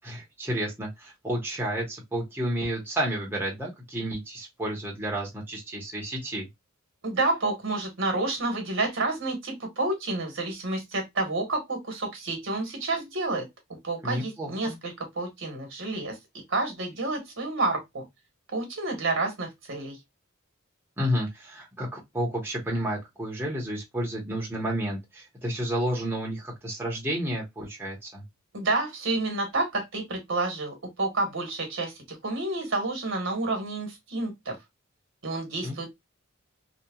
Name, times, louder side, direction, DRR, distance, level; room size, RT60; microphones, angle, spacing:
voice 1, 0.0-6.5 14.0-14.7 21.0-28.2 35.6-35.9, equal, 10° right, 0.8 m, -31 dB
voice 2, 7.0-13.5 13.8-16.2 16.5-18.0 18.5-20.0 28.5-34.6 35.2-35.9, right 2 dB, 60° right, 1.2 m, -29 dB
2.8 x 2.3 x 2.2 m
head